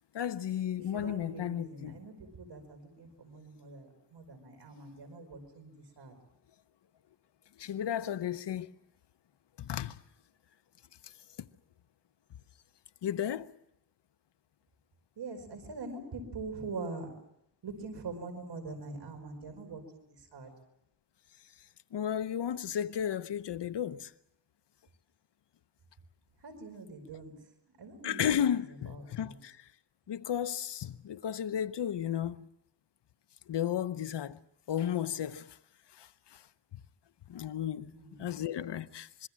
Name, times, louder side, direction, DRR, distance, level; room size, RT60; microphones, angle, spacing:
voice 1, 0.1-2.0 7.6-8.7 9.6-10.0 13.0-13.5 21.9-24.1 28.0-29.6 30.1-32.5 33.5-34.4 34.7-35.6 36.0-36.4 37.3-37.9 38.2-39.3, left 9 dB, 85° left, 0.9 m, -33 dB
voice 2, 0.9-6.1 15.2-17.1 17.6-20.5 26.4-27.3 27.8-28.5 28.9-29.4 37.9-38.3, right 3 dB, 90° right, 5.2 m, -43 dB
26.0 x 22.5 x 7.5 m
wide cardioid pair, 85°, 40 cm